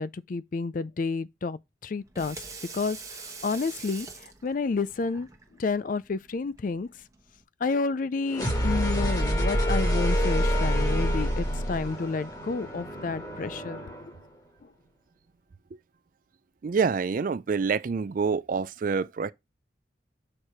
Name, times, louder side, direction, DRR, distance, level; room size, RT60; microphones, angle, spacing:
voice 1, 0.0-2.4 2.7-5.3 5.6-6.9 7.6-13.8, left 4 dB, 45° left, 0.4 m, -30 dB
Water tap faucet / Sink (filling or washing), 1.9-7.4, right 4 dB, 15° right, 1.1 m, -45 dB
sound 1, 8.3-14.1, equal, 20° left, 1.6 m, -27 dB
voice 2, 16.6-19.3, right 5 dB, 45° right, 0.4 m, -27 dB
6.6 x 4.5 x 4.8 m
head